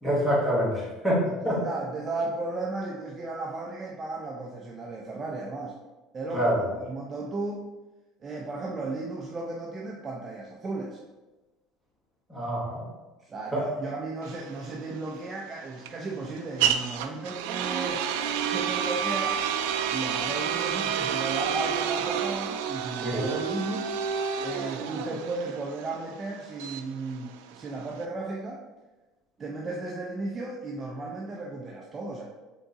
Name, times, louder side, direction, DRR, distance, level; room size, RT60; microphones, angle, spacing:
voice 1, 0.0-1.6 6.3-6.6 12.3-12.9 13.5-13.7 23.0-23.3, equal, 5° left, -5 dB, 1.3 m, -26 dB
voice 2, 1.2-5.7 6.1-7.7 8.2-11.0 13.2-18.2 18.4-19.4 19.9-24.0 24.4-28.6 29.4-32.2, right 3 dB, 20° right, -1 dB, 0.4 m, -35 dB
sound 1, 14.2-28.0, right 8 dB, 90° right, 0.3 m, -30 dB
3.7 x 3.6 x 3.9 m, 1.1 s
cardioid pair, 160°, 0 cm